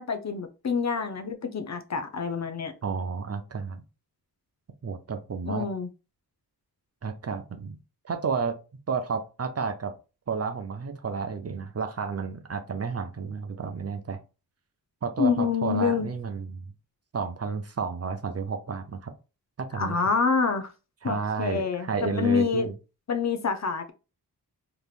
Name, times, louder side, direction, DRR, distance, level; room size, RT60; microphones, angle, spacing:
voice 1, 0.0-2.7 5.5-5.9 15.2-16.1 19.7-20.7 21.0-22.7 23.1-23.9, left 5 dB, 45° left, 0.7 m, -27 dB
voice 2, 2.8-3.8 4.8-5.7 7.0-7.8 8.0-8.6 8.9-9.9 10.3-14.2 15.0-16.7 17.1-19.1 19.6-20.0 21.0-22.7, right 5 dB, 40° right, 0.6 m, -31 dB
3.6 x 3.2 x 2.4 m
wide cardioid pair, 95°, 39 cm